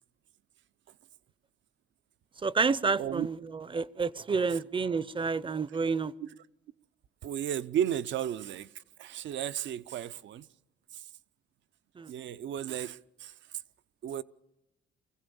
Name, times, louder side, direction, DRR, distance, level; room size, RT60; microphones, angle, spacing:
voice 1, 2.4-3.4 3.7-6.1 12.0-12.1, right 4 dB, 25° right, 0.6 m, -29 dB
voice 2, 7.2-10.5 10.9-11.1 12.1-13.6 14.0-14.2, right 10 dB, 70° right, 0.7 m, -34 dB
24.5 x 15.5 x 7.0 m
cardioid pair, 90°, 20 cm